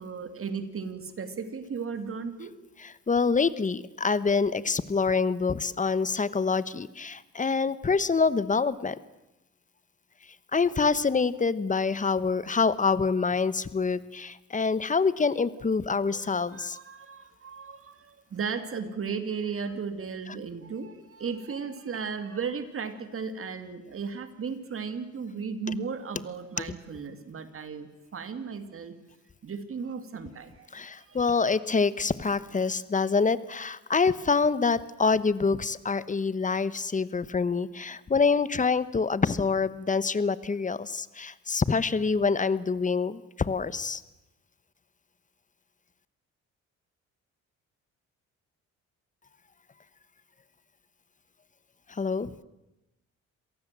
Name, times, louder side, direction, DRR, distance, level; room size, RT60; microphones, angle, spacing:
voice 1, 0.0-2.5 14.9-15.0 16.0-28.9 29.4-31.5, right 5 dB, 45° right, 9 dB, 2.6 m, -36 dB
voice 2, 2.8-9.0 10.5-16.8 26.6-26.7 30.7-44.0 51.9-52.3, left 4 dB, 25° left, 16 dB, 1.1 m, -26 dB
27.0 x 18.0 x 7.6 m, 0.96 s
cardioid pair, 90°, 30 cm